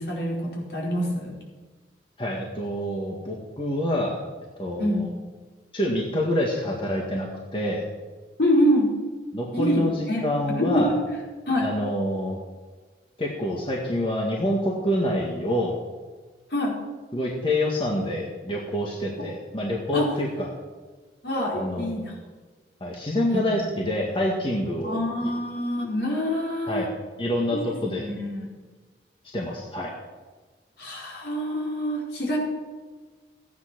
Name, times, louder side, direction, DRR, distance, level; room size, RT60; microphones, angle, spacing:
voice 1, 0.0-1.3 4.8-5.0 8.4-8.9 9.5-10.3 10.6-10.9 11.5-11.7 16.5-16.7 19.9-20.1 21.2-22.1 23.3-23.6 24.8-26.9 27.5-27.6 28.0-28.5 30.8-32.4, equal, 70° left, -3 dB, 4.7 m, -25 dB
voice 2, 2.2-4.2 4.6-5.1 5.7-7.9 9.3-10.9 11.6-12.4 13.2-15.7 17.1-20.5 21.5-21.9 22.8-25.0 26.7-26.9 27.2-28.1 29.3-29.9, left 1 dB, 30° left, -2 dB, 1.9 m, -27 dB
15.5 x 9.6 x 6.2 m, 1.4 s
head